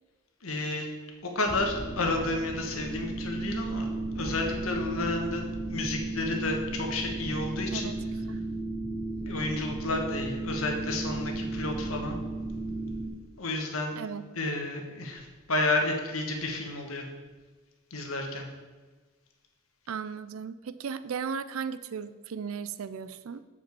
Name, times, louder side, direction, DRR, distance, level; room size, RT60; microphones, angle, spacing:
voice 1, 0.4-0.9 1.2-3.9 4.1-7.9 9.2-12.2 13.4-14.0 14.3-17.1 17.9-18.4, left 2 dB, 80° left, 2 dB, 1.5 m, -31 dB
sound 1, 1.5-13.1, right 2 dB, 30° left, 1.3 m, -34 dB
voice 2, 14.0-14.3 19.9-23.4, right 6 dB, 75° right, 14 dB, 0.4 m, -36 dB
7.2 x 5.1 x 6.9 m, 1.3 s
head